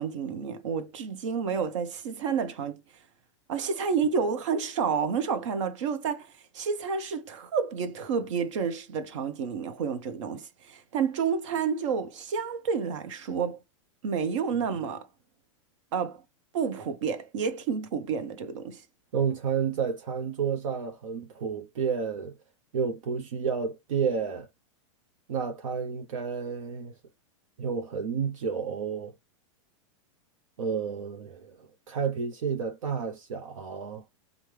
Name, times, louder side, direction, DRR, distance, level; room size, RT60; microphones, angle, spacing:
voice 1, 0.0-2.8 3.5-13.6 14.0-15.1 15.9-16.2 16.5-18.8, right 6 dB, 65° right, 1.1 m, -30 dB
voice 2, 19.1-22.4 22.7-24.5 25.3-26.9 27.6-29.1 30.6-34.0, right 6 dB, 85° right, 0.8 m, -31 dB
5.2 x 2.3 x 3.3 m
supercardioid pair, 150°, 17 cm